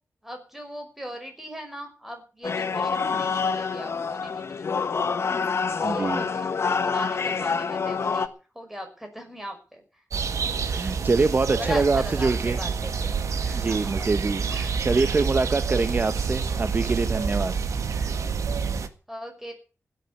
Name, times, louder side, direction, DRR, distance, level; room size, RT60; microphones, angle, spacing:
voice 1, 0.2-4.9 5.7-10.0 11.6-14.1 14.5-15.9 18.0-18.2 19.1-19.5, equal, 5° right, 5.9 m, -40 dB
sound 1, 2.4-8.3, left 5 dB, 55° left, 1.4 m, -26 dB
voice 2, 5.8-6.2 10.6-12.6 13.5-14.5 14.8-17.5, right 3 dB, 35° right, 1.0 m, -24 dB
sound 2, 10.1-18.9, right 5 dB, 90° right, 1.7 m, -28 dB
16.0 x 9.2 x 8.5 m
wide cardioid pair, 135°, 5 cm